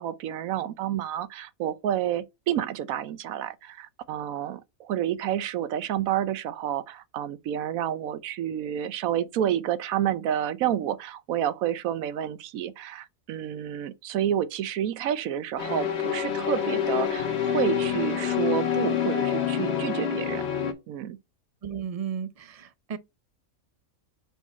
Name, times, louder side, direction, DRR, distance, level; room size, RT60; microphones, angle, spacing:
voice 1, 0.0-20.5 20.9-21.2, right 10 dB, 80° right, 1.1 m, -29 dB
sound 1, 15.6-20.7, left 8 dB, 50° left, 1.3 m, -27 dB
voice 2, 21.6-23.0, right 8 dB, 45° right, 0.4 m, -34 dB
4.8 x 4.0 x 5.2 m
omnidirectional pair, 1.5 m